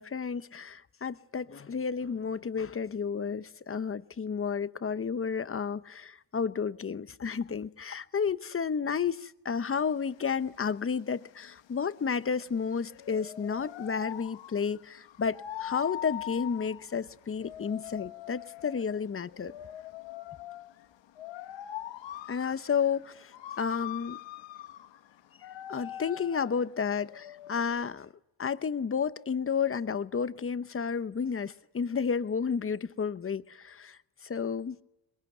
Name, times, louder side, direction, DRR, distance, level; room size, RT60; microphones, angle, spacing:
voice 1, 0.0-19.5 22.3-24.2 25.7-28.1 28.4-34.8, left 6 dB, 30° left, 0.9 m, -32 dB
sound 1, 9.9-27.9, left 12 dB, 85° left, 1.1 m, -43 dB
23.5 x 21.5 x 9.4 m
cardioid pair, 120°, 44 cm